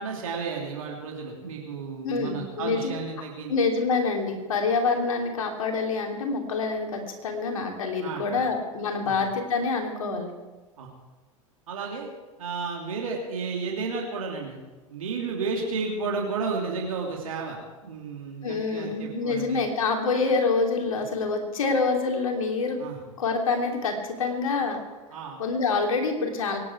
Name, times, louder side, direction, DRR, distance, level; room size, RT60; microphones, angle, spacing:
voice 1, 0.0-3.5 8.0-8.4 9.0-9.2 10.8-10.9 11.7-12.1 12.4-14.6 14.9-19.7 22.8-23.0 25.1-25.4, right 4 dB, 75° right, 0 dB, 3.1 m, -32 dB
voice 2, 2.0-2.9 3.5-10.3 18.4-22.8 23.2-24.8 25.4-26.6, left 4 dB, 75° left, 3 dB, 3.0 m, -26 dB
23.5 x 11.0 x 4.8 m, 1.2 s
hypercardioid pair, 85°, 17 cm